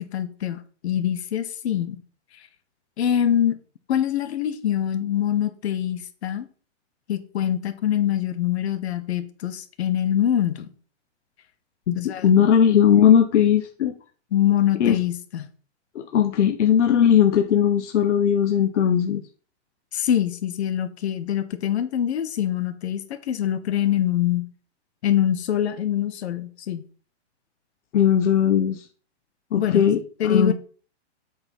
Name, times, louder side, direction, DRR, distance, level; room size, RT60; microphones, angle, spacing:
voice 1, 0.0-2.0 3.0-3.5 3.9-6.5 7.1-10.7 11.9-12.3 14.3-15.5 19.9-24.5 25.0-26.8 29.6-30.5, left 10 dB, 65° left, 9 dB, 1.3 m, -24 dB
voice 2, 11.9-13.9 14.8-15.0 15.9-19.2 27.9-28.9 29.5-30.5, left 9 dB, 80° left, 6 dB, 1.0 m, -18 dB
7.7 x 4.7 x 5.5 m, 0.40 s
hypercardioid pair, 155°, 35 cm